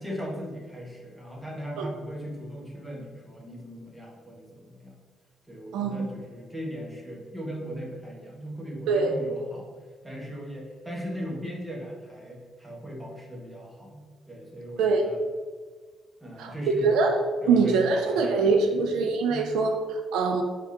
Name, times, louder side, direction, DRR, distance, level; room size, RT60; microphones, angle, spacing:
voice 1, 0.0-4.9 5.5-9.7 10.0-15.2 16.2-16.9 17.4-18.9 19.3-19.5, equal, 10° right, -3 dB, 1.3 m, -38 dB
voice 2, 5.7-6.1 8.9-9.1 14.8-15.0 16.4-16.5 16.8-17.2 17.5-20.4, right 4 dB, 90° right, 4 dB, 0.4 m, -23 dB
4.9 x 3.3 x 2.8 m, 1.5 s
cardioid pair, 90°, 0 cm